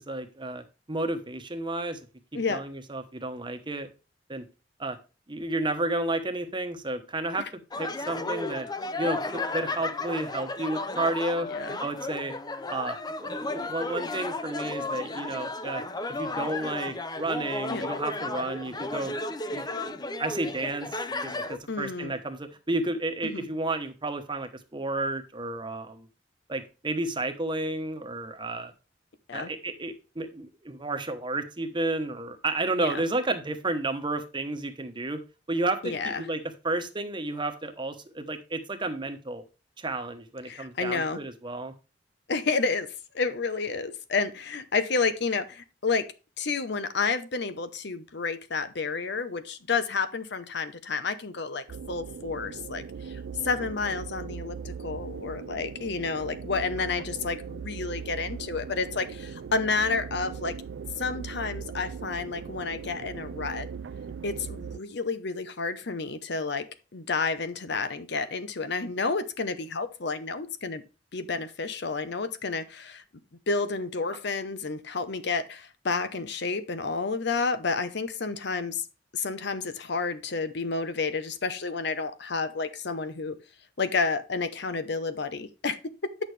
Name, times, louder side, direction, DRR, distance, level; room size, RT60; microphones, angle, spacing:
voice 1, 0.0-2.1 2.5-3.9 4.3-4.4 4.8-5.0 5.3-7.5 7.8-8.7 9.0-11.5 11.8-12.3 12.7-15.8 16.1-19.1 19.5-19.9 20.2-26.1 26.5-28.7 29.3-35.2 35.5-39.4 39.8-41.7, right 2 dB, 25° right, 7 dB, 1.1 m, -32 dB
sound 1, 7.7-21.6, left 2 dB, 20° left, 0.6 m, -34 dB
voice 2, 21.7-22.1 23.2-23.5 29.3-29.5 32.8-33.0 35.8-36.3 40.5-41.2 42.3-46.1 46.4-60.6 61.0-63.7 64.2-66.7 66.9-70.8 71.1-73.0 73.5-78.9 79.1-83.4 83.8-85.8, left 4 dB, 65° left, 12 dB, 0.9 m, -30 dB
sound 2, 51.7-64.8, right 6 dB, 80° right, 0.4 m, -39 dB
9.2 x 6.4 x 3.3 m, 0.32 s
head